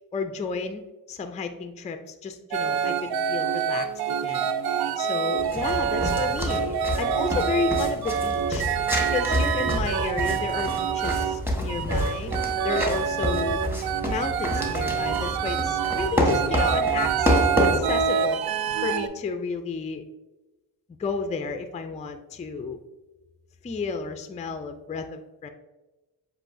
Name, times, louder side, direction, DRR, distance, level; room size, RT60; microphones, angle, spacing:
voice 1, 0.1-0.8 1.1-3.9 4.2-4.5 5.0-8.6 9.0-12.3 12.6-13.6 14.1-18.4 18.8-20.0 21.0-22.8 23.6-25.5, left 4 dB, 20° left, 7 dB, 0.4 m, -32 dB
sound 1, 2.5-11.4 11.7-19.1, right 7 dB, 65° right, 0.5 m, -26 dB
sound 2, 5.4-18.0, equal, 5° right, 1.2 m, -28 dB
7.4 x 2.7 x 2.6 m, 1.1 s
supercardioid pair, 55°, 41 cm